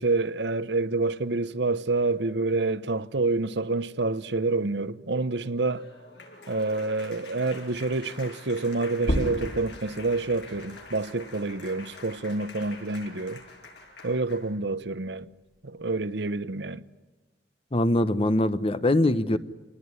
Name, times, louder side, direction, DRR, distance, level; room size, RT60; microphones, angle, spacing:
voice 1, 0.0-5.9 6.5-13.4 14.0-15.3 15.6-16.8, right 3 dB, 65° right, 0.9 m, -28 dB
Applause, 5.4-14.5, left 3 dB, 65° left, 7.4 m, -46 dB
sound 1, 9.0-14.2 14.6-16.4, equal, 50° left, 3.8 m, -35 dB
voice 2, 17.7-19.4, left 1 dB, 30° left, 1.0 m, -22 dB
27.0 x 20.0 x 9.8 m
head